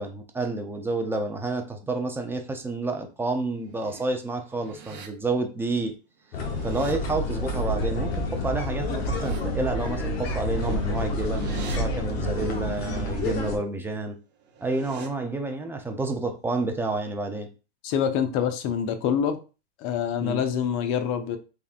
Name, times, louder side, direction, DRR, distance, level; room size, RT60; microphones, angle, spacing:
voice 1, 0.0-5.9 6.6-14.2 14.6-17.5 20.2-20.4, right 3 dB, 5° right, 5 dB, 0.4 m, -29 dB
sound 1, 3.4-4.0 4.4-5.1 6.2-6.9 8.7-9.4 10.6-11.8 14.3-15.1, right 6 dB, 35° right, 0.7 m, -44 dB
sound 2, 6.3-13.6, left 1 dB, 70° left, 1.1 m, -28 dB
voice 2, 17.8-19.4 19.8-21.4, left 8 dB, 45° left, 9 dB, 0.7 m, -26 dB
3.6 x 3.4 x 2.4 m, 0.33 s
hypercardioid pair, 115°, 32 cm